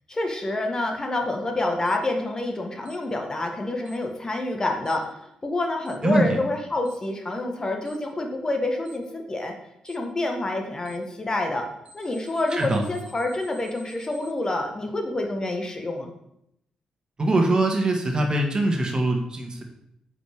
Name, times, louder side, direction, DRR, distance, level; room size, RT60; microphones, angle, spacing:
voice 1, 0.1-9.6 9.8-11.7 11.9-16.1, left 2 dB, 30° left, 3 dB, 1.4 m, -27 dB
Alarm, 1.9-2.0 2.9-3.0 3.9-4.0 4.9-5.0 5.9-6.0 6.9-7.0 7.9-8.0 8.9-9.0 9.9-10.0 10.9-11.0 11.9-14.3, right 1 dB, 55° right, 2.0 m, -50 dB
voice 2, 6.0-6.4 12.5-12.8 17.2-19.6, right 2 dB, 35° right, 2 dB, 1.6 m, -22 dB
8.9 x 5.1 x 3.6 m, 0.78 s
supercardioid pair, 60°, 2 cm